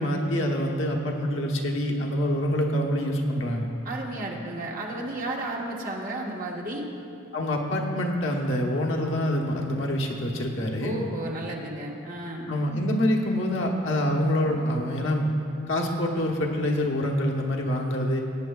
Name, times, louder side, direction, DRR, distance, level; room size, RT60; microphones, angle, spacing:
voice 1, 0.0-3.7 7.3-10.9 12.5-15.3 15.7-18.2, left 1 dB, 70° left, 0 dB, 1.1 m, -26 dB
voice 2, 3.8-6.9 10.8-12.5, right 1 dB, 40° right, -2 dB, 1.3 m, -33 dB
19.0 x 9.1 x 2.3 m, 2.7 s
head